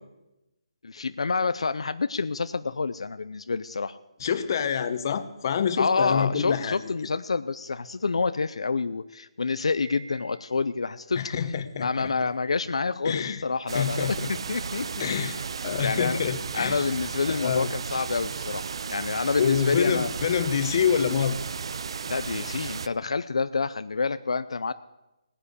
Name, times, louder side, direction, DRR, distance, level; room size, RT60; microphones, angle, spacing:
voice 1, 0.8-4.0 5.8-11.3 11.8-15.1 15.8-16.2 16.5-18.6 18.9-20.1 22.1-24.7, left 4 dB, 80° left, 12 dB, 0.6 m, -28 dB
voice 2, 4.2-6.8 11.2-12.1 13.0-13.4 13.7-14.3 15.0-15.4 15.6-16.8 17.3-17.7 19.4-21.4, left 7 dB, 40° left, 11 dB, 1.2 m, -26 dB
Piano, 9.8-10.9, right 2 dB, 30° right, 4.7 m, -48 dB
sound 1, 13.7-22.9, right 5 dB, 60° right, 0.5 m, -34 dB
17.5 x 10.0 x 8.2 m, 0.98 s
hypercardioid pair, 160°, 3 cm